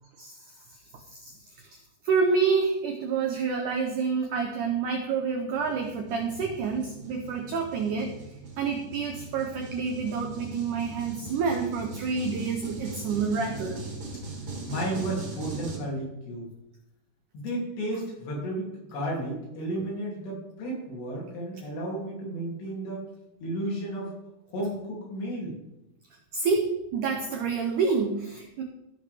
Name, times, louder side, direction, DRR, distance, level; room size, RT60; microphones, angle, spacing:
voice 1, 1.2-1.8 2.0-8.2 8.6-13.8 26.3-28.6, right 5 dB, 85° right, 3 dB, 1.8 m, -28 dB
sound 1, 5.5-15.8, right 3 dB, 40° right, 2.2 m, -40 dB
voice 2, 14.6-16.4 17.3-23.1 23.4-24.1 24.5-25.5, right 1 dB, 80° left, -3 dB, 4.9 m, -33 dB
15.5 x 5.9 x 3.4 m, 0.90 s
omnidirectional pair, 4.8 m